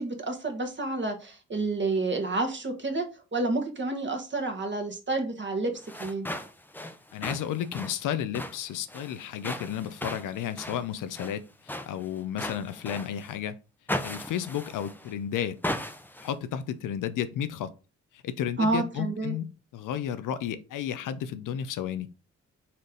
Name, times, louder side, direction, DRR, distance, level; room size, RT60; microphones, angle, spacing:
voice 1, 0.0-3.0 3.3-5.7 6.0-6.3 18.6-19.3, right 2 dB, 35° right, 1.4 m, -29 dB
sound 1, 5.8-13.4 13.9-15.1 15.6-16.3, left 1 dB, 5° left, 0.7 m, -37 dB
voice 2, 7.1-13.6 14.0-15.6 16.2-17.7 18.1-22.1, left 9 dB, 75° left, 0.5 m, -32 dB
4.2 x 3.2 x 3.8 m
supercardioid pair, 50°, 32 cm